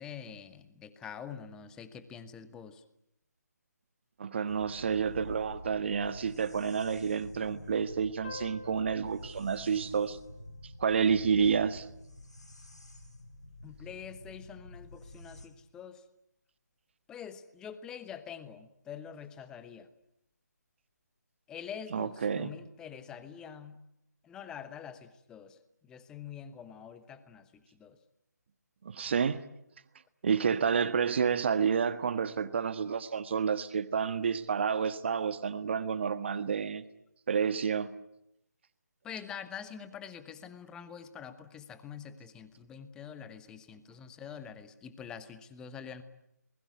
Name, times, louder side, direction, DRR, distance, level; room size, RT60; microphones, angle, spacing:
voice 1, 0.0-2.8 13.6-16.0 17.1-19.9 21.5-23.8 24.2-25.6 25.8-28.0 39.0-46.0, left 8 dB, 5° left, 12 dB, 1.1 m, -45 dB
voice 2, 4.2-10.2 10.8-11.9 21.9-22.5 28.8-29.4 30.2-36.8 37.3-37.9, right 6 dB, 40° right, 12 dB, 1.5 m, -29 dB
sound 1, 4.5-15.5, left 1 dB, 75° left, 5.4 m, -48 dB
sound 2, 8.2-11.4, left 3 dB, 30° left, 4.4 m, -49 dB
28.0 x 20.5 x 9.4 m, 0.81 s
figure-of-eight pair, 150°, 10 cm